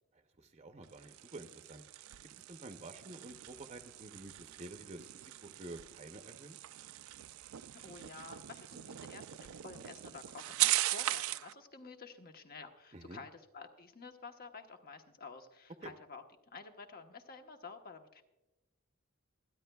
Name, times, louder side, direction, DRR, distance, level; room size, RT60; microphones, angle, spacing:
voice 1, 0.4-1.8 2.5-6.6 12.9-13.2 15.8-15.9, right 2 dB, 30° right, 7 dB, 0.7 m, -49 dB
sound 1, 0.8-11.5, right 15 dB, 75° right, 0.4 m, -39 dB
voice 2, 7.7-18.2, left 4 dB, 45° left, 5 dB, 1.0 m, -51 dB
27.5 x 10.0 x 2.3 m, 1.0 s
head